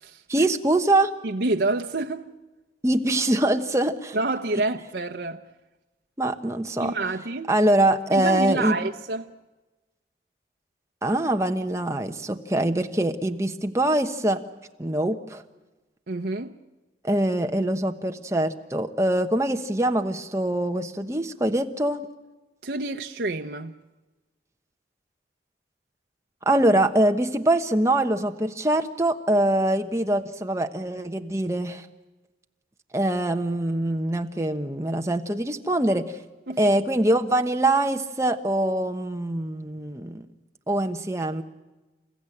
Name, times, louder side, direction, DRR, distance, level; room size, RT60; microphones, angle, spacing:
voice 1, 0.3-1.1 2.8-4.2 6.2-6.9 7.5-8.8 11.0-14.4 14.8-15.4 17.0-22.1 26.4-31.9 32.9-36.2 36.6-40.2 40.7-41.4, right 1 dB, 15° right, 1.1 m, -23 dB
voice 2, 1.2-2.3 4.1-5.5 6.8-7.5 8.1-9.3 16.1-16.6 22.6-23.7 36.5-36.6, right 2 dB, 70° right, 0.8 m, -28 dB
28.5 x 15.0 x 9.9 m
head